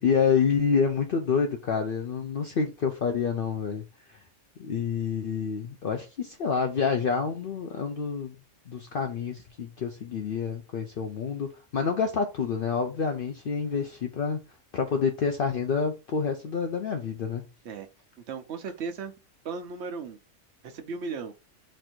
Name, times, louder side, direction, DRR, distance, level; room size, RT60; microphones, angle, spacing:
voice 1, 0.0-4.2 4.6-8.3 8.7-14.4 14.7-17.4, left 6 dB, 55° left, 0.7 m, -28 dB
voice 2, 18.3-19.1 19.4-20.2 20.6-21.3, right 5 dB, 65° right, 1.0 m, -36 dB
4.3 x 2.6 x 4.4 m
omnidirectional pair, 1.3 m